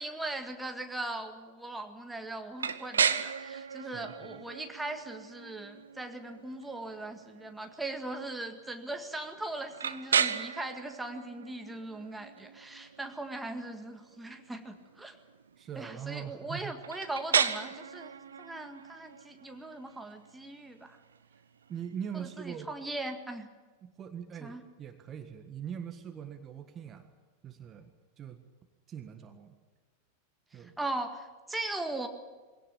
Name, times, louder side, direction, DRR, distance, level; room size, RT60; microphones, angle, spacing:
voice 1, 0.0-15.2 15.8-18.1 18.4-21.0 22.1-23.5 24.4-24.6 30.5-32.1, right 2 dB, 5° right, 5 dB, 1.9 m, -39 dB
sound 1, 2.6-22.4, right 7 dB, 70° right, 1.0 m, -36 dB
voice 2, 3.8-4.4 15.6-16.8 21.7-22.7 23.8-27.1 27.4-27.9 28.2-28.4 28.9-29.6 30.5-30.7, right 8 dB, 25° right, 8 dB, 1.6 m, -42 dB
22.0 x 17.5 x 10.0 m, 1.3 s
figure-of-eight pair, 90°, 0 cm